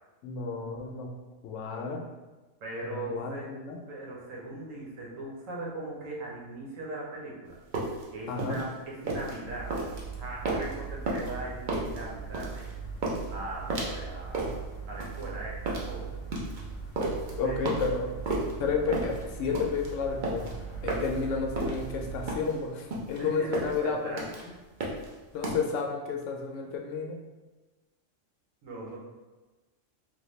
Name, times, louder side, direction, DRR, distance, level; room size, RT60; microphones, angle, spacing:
voice 1, 0.2-1.1 1.4-2.0 2.8-3.8 8.3-8.6 17.4-18.1 18.6-20.6 20.8-24.2 25.3-27.2, left 5 dB, 75° left, 1 dB, 0.9 m, -31 dB
voice 2, 2.6-3.5 3.9-7.5 8.1-9.7 10.2-12.6 13.3-14.5 14.9-16.2 17.4-17.6 23.1-24.5 28.6-29.0, right 2 dB, 85° right, -4 dB, 1.2 m, -39 dB
sound 1, 7.5-25.5, right 2 dB, 50° right, 0.6 m, -34 dB
sound 2, 9.4-22.4, right 5 dB, 55° left, 0.5 m, -40 dB
3.4 x 2.2 x 3.1 m, 1.2 s
omnidirectional pair, 1.3 m